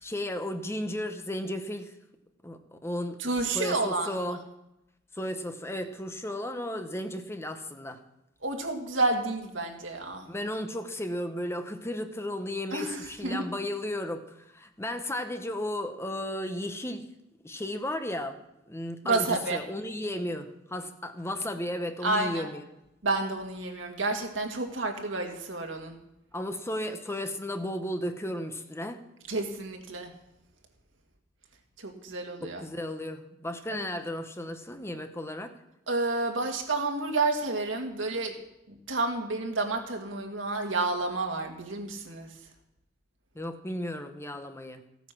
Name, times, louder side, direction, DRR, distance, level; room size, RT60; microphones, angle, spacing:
voice 1, 0.0-2.0 2.4-3.2 3.5-4.4 5.1-8.0 10.3-17.1 17.4-19.2 19.5-22.6 26.3-29.0 32.4-35.6 43.3-44.8, left 1 dB, 15° left, 7 dB, 0.9 m, -34 dB
voice 2, 3.2-4.4 8.4-10.3 12.7-13.5 19.0-19.6 22.0-22.5 23.0-26.0 29.3-30.1 31.8-32.6 33.7-33.9 35.9-38.4 38.7-42.5, right 3 dB, 70° right, 3 dB, 2.2 m, -30 dB
15.0 x 9.3 x 6.1 m, 0.86 s
head